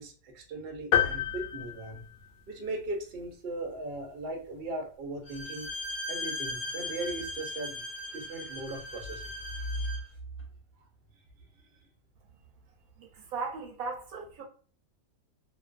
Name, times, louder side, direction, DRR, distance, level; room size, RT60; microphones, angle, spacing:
voice 1, 0.0-2.0 2.5-5.7 6.1-7.8 8.1-9.2 9.7-9.8 11.6-11.7, right 2 dB, 55° right, 0.6 m, -38 dB
sound 1, 0.9-2.7, left 8 dB, 85° left, 1.1 m, -29 dB
Bowed string instrument, 5.2-10.1, left 1 dB, 40° left, 0.8 m, -38 dB
voice 2, 13.0-14.4, right 4 dB, 70° right, 1.0 m, -37 dB
2.5 x 2.3 x 2.3 m
omnidirectional pair, 1.7 m